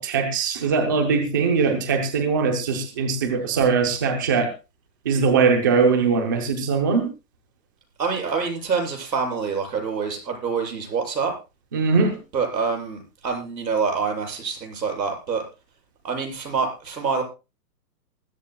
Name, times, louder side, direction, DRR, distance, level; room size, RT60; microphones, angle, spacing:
voice 1, 0.0-4.5 5.0-7.1 11.7-12.2, right 5 dB, 15° right, 4 dB, 0.7 m, -21 dB
voice 2, 8.0-11.3 12.3-15.4 16.0-17.2, right 5 dB, 85° right, 2 dB, 7.9 m, -26 dB
20.5 x 14.5 x 2.3 m, 0.30 s
hypercardioid pair, 170°, 49 cm